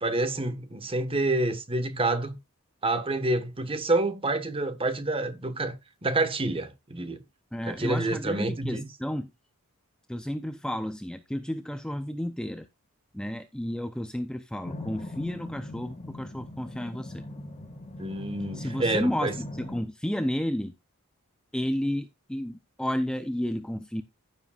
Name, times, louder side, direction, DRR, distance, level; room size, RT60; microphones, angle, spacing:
voice 1, 0.0-2.4 2.8-5.7 6.0-7.2 7.7-8.9 18.0-19.3, right 2 dB, 25° right, 1.3 m, -28 dB
voice 2, 7.5-9.3 10.1-12.7 13.1-17.2 18.5-20.7 21.5-24.0, equal, 5° left, 0.5 m, -32 dB
sound 1, 14.6-19.8, left 1 dB, 30° left, 1.8 m, -40 dB
14.5 x 7.4 x 2.4 m
head